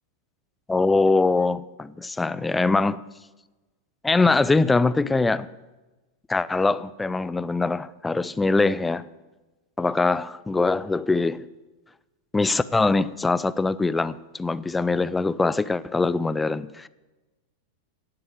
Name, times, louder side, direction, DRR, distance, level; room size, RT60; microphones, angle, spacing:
voice 1, 0.7-3.0 4.0-5.5 6.3-9.1 9.8-11.4 12.3-16.9, left 3 dB, 10° left, 0.5 m, -23 dB
17.0 x 7.8 x 9.1 m
figure-of-eight pair, 90°, 0 cm